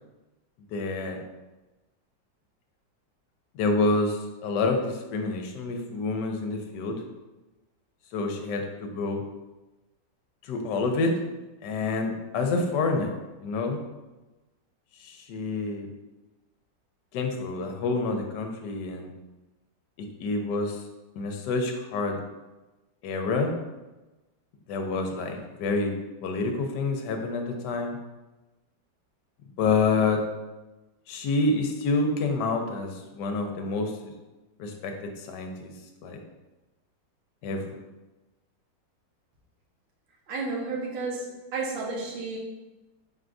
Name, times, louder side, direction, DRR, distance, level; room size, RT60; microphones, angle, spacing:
voice 1, 0.7-1.2 3.5-7.0 8.1-9.2 10.4-11.1 11.6-13.8 15.0-15.9 17.1-19.1 20.2-20.8 21.2-22.2 23.0-23.5 24.7-25.9 26.2-28.0 29.6-30.2 31.1-33.9 34.6-35.7 36.0-36.2 37.4-37.8, left 3 dB, 75° left, 4 dB, 1.2 m, -28 dB
voice 2, 40.3-42.4, right 3 dB, 75° right, -2 dB, 1.5 m, -32 dB
4.4 x 3.6 x 2.5 m, 1.1 s
omnidirectional pair, 2.0 m